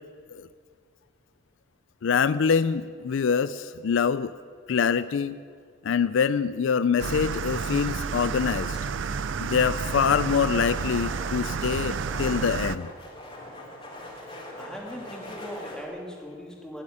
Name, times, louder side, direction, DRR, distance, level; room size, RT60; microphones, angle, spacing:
voice 1, 2.0-4.3 4.7-5.4 5.8-8.8 9.4-12.9, left 6 dB, 65° left, 15 dB, 0.4 m, -25 dB
sound 1, 7.0-12.8, right 5 dB, 60° right, 0.4 m, -30 dB
sound 2, 9.8-15.9, left 1 dB, 25° left, 3.2 m, -42 dB
voice 2, 14.5-16.8, left 1 dB, 5° left, -1 dB, 2.3 m, -39 dB
17.5 x 8.4 x 9.9 m, 2.1 s
head